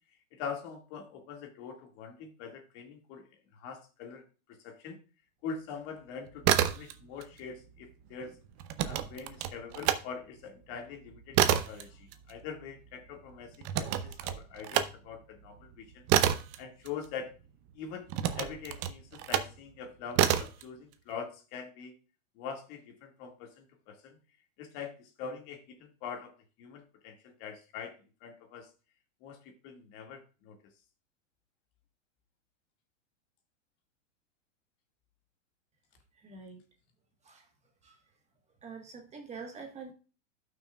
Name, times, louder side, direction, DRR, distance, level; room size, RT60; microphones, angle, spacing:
voice 1, 0.3-3.2 3.5-4.2 4.5-5.0 5.4-8.4 8.8-16.0 16.6-17.3 17.7-18.1 18.3-21.9 22.4-24.2 24.6-26.3 26.6-27.9 28.2-28.7 29.2-30.6, left 6 dB, 45° left, 3 dB, 1.9 m, -43 dB
sound 1, 6.3-7.3 7.6-10.0 10.4-17.5 18.1-19.6 20.1-20.6, right 11 dB, 35° right, 0.7 m, -29 dB
voice 2, 36.2-36.6 38.6-39.9, right 5 dB, 15° right, 3 dB, 1.3 m, -44 dB
13.5 x 6.1 x 2.3 m, 0.34 s
supercardioid pair, 135°, 38 cm